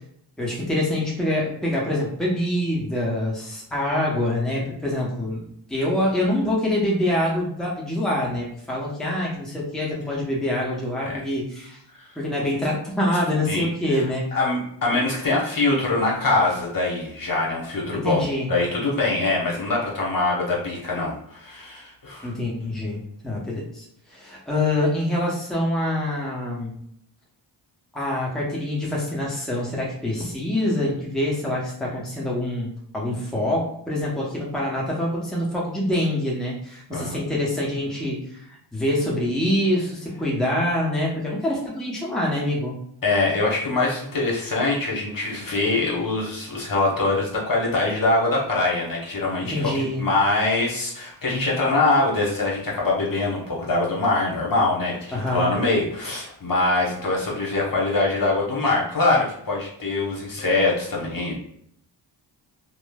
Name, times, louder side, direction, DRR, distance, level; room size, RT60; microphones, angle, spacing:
voice 1, 0.4-5.4 5.7-11.8 12.2-14.2 17.9-18.5 22.2-26.8 27.9-42.7 49.4-50.0 55.1-55.5, left 1 dB, ahead, -4 dB, 0.8 m, -25 dB
voice 2, 13.5-14.0 14.3-22.3 36.9-37.3 43.0-61.3, left 2 dB, 45° left, -3 dB, 1.1 m, -23 dB
3.0 x 2.1 x 2.3 m, 0.69 s
cardioid pair, 55°, 46 cm